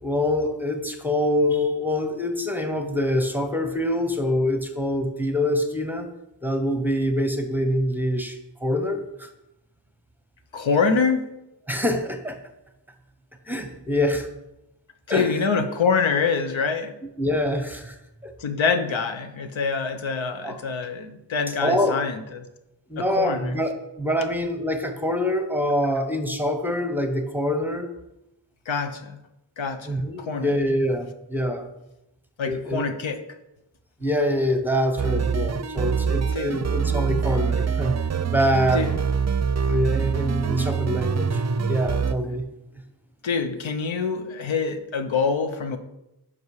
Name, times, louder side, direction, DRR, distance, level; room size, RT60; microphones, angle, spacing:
voice 1, 0.0-6.1 6.4-9.3 11.7-12.4 13.5-14.3 15.1-15.4 17.2-18.0 18.2-18.3 20.4-20.6 21.6-22.0 22.9-27.9 29.9-31.7 32.5-32.8 34.0-37.9 38.3-38.9 39.7-41.4 41.7-42.4, left 1 dB, 5° right, 6 dB, 1.0 m, -25 dB
voice 2, 10.5-11.3 15.1-16.9 18.4-22.4 23.0-23.6 28.7-29.2 29.6-30.5 32.4-33.2 36.3-36.6 38.7-38.9 43.2-45.8, left 5 dB, 85° left, 8 dB, 1.0 m, -25 dB
sound 1, 35.0-42.1, right 6 dB, 35° right, 0.5 m, -24 dB
11.0 x 5.5 x 4.8 m, 0.92 s
wide cardioid pair, 105°, 45 cm